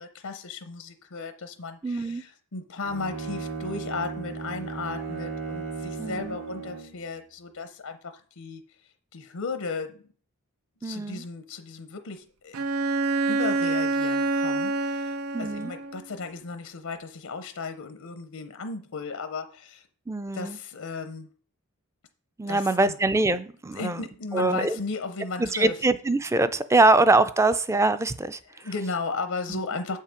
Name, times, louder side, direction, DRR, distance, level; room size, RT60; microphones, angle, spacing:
voice 1, 0.0-10.0 10.8-12.6 13.3-19.9 20.3-21.3 22.5-22.9 23.7-25.8 28.5-30.0, left 4 dB, 80° left, 8 dB, 0.7 m, -35 dB
voice 2, 1.8-2.2 6.0-6.4 10.8-11.2 15.3-15.7 20.1-20.6 22.4-24.0 24.3-24.8 25.4-28.4 29.5-29.6, right 2 dB, 15° right, 13 dB, 0.4 m, -23 dB
Bowed string instrument, 2.8-7.0, right 4 dB, 70° right, 1.6 m, -35 dB
Bowed string instrument 2, 12.5-16.0, right 3 dB, 90° right, 0.6 m, -26 dB
7.4 x 5.6 x 5.1 m, 0.43 s
head